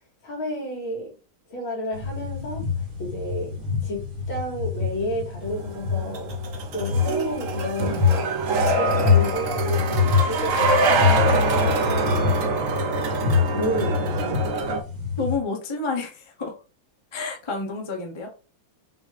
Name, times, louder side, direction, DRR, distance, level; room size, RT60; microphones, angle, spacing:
voice 1, 0.2-1.1 1.5-2.7 3.0-3.6 3.8-6.3 6.7-12.8 13.5-14.4, left 1 dB, 70° left, 2.9 m, -32 dB
sound 1, 1.9-15.4, left 6 dB, 35° right, 1.3 m, -26 dB
sound 2, 5.5-14.8, right 3 dB, 70° right, 0.7 m, -24 dB
voice 2, 15.2-16.5 17.1-18.3, left 4 dB, 35° left, 0.4 m, -29 dB
6.0 x 2.7 x 3.3 m
omnidirectional pair, 2.3 m